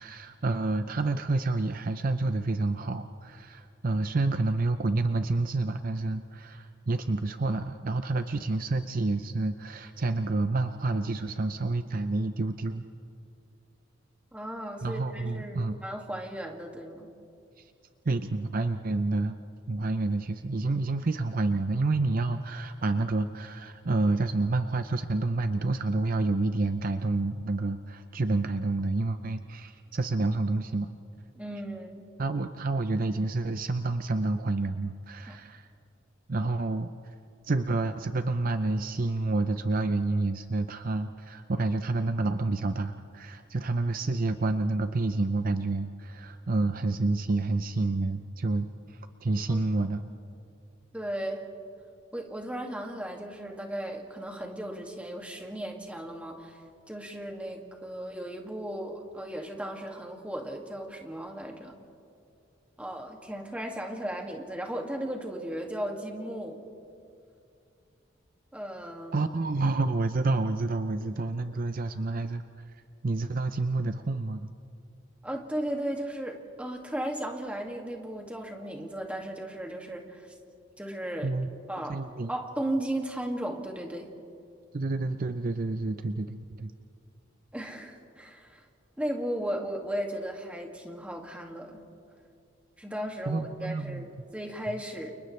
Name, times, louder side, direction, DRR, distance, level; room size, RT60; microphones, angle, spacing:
voice 1, 0.0-12.8 14.8-15.8 17.6-17.7 18.1-19.3 19.7-30.9 32.2-35.7 36.3-36.9 37.4-50.0 69.1-72.4 73.0-74.5 81.2-82.3 84.7-86.7 93.3-94.1, right 2 dB, 45° right, 9 dB, 0.6 m, -29 dB
voice 2, 14.3-17.1 31.3-32.1 35.3-35.4 49.5-49.7 50.9-51.4 52.1-56.6 56.9-61.8 62.8-66.6 68.5-69.3 75.2-80.2 80.8-81.3 81.7-82.0 82.3-84.1 87.5-88.6 89.0-91.8 92.8-95.1, right 1 dB, 5° right, 1 dB, 2.2 m, -36 dB
29.5 x 29.5 x 3.3 m, 2.5 s
head